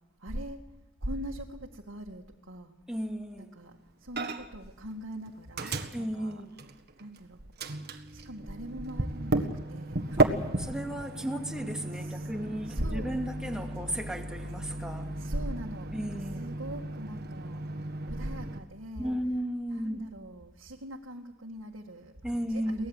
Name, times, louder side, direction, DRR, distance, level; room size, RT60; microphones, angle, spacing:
voice 1, 0.2-0.6 1.0-2.7 3.4-6.4 7.0-7.5 8.1-10.4 12.0-12.3 12.6-13.1 15.2-19.2 19.7-22.9, right 1 dB, 80° right, 1.9 m, -40 dB
voice 2, 2.9-3.5 5.9-6.5 10.2-10.3 10.6-15.1 15.9-16.5 19.0-20.0 22.2-22.9, equal, 5° right, 2.4 m, -34 dB
Microwave oven, 4.2-4.6 4.9-7.2 7.6-18.6, right 2 dB, 55° right, 1.7 m, -34 dB
23.0 x 18.5 x 8.1 m
head